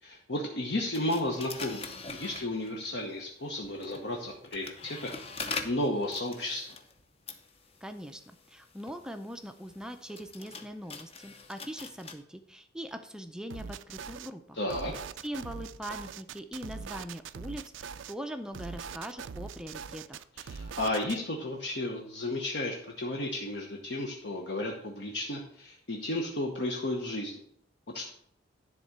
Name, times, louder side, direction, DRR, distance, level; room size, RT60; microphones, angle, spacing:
voice 1, 0.0-5.2 5.6-6.7 14.5-14.9 20.4-27.3 27.9-28.1, left 1 dB, 60° left, 0 dB, 1.0 m, -33 dB
sound 1, 0.9-3.0 3.6-12.1, left 4 dB, 30° left, 0.7 m, -43 dB
voice 2, 7.8-8.2 8.5-14.6 15.2-20.3, equal, 5° right, 7 dB, 0.4 m, -41 dB
sound 2, 13.5-14.3 14.7-18.1 18.5-21.2, right 6 dB, 70° right, 0.4 m, -42 dB
11.0 x 3.7 x 6.6 m, 0.68 s
head